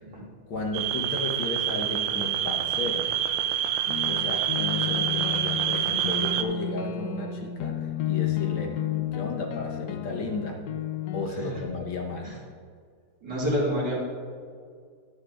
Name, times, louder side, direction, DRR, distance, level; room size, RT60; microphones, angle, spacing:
voice 1, 0.5-3.1 4.1-8.8 9.1-10.6 11.1-12.3, left 2 dB, 70° left, 1 dB, 1.8 m, -34 dB
sound 1, 0.7-6.4, right 10 dB, 75° right, 1.3 m, -27 dB
sound 2, 3.9-11.3, left 10 dB, 85° left, 0.9 m, -32 dB
voice 2, 13.2-14.0, equal, 50° right, -6 dB, 3.0 m, -28 dB
21.5 x 7.3 x 2.5 m, 2.1 s
omnidirectional pair, 2.4 m